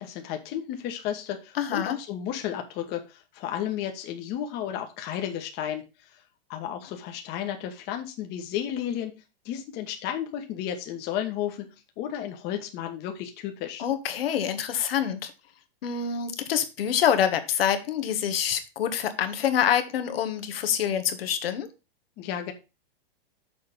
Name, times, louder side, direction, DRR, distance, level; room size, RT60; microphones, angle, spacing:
voice 1, 0.0-5.8 6.1-6.2 6.5-9.1 9.4-13.8 22.2-22.5, left 10 dB, 35° left, 1.3 m, -33 dB
voice 2, 1.6-2.0 13.8-15.3 15.8-21.7, left 9 dB, 80° left, 1.5 m, -26 dB
6.6 x 4.3 x 6.6 m
supercardioid pair, 145°, 29 cm